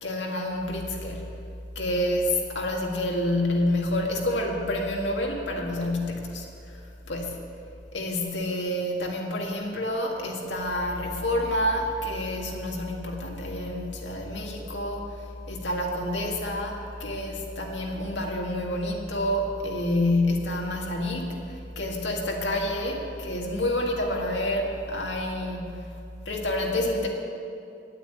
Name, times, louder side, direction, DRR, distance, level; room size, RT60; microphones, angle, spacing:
voice 1, 0.0-1.4 1.8-7.4 7.9-25.9 26.3-27.1, left 1 dB, 85° left, 0 dB, 2.0 m, -28 dB
10.0 x 9.0 x 8.8 m, 2.6 s
head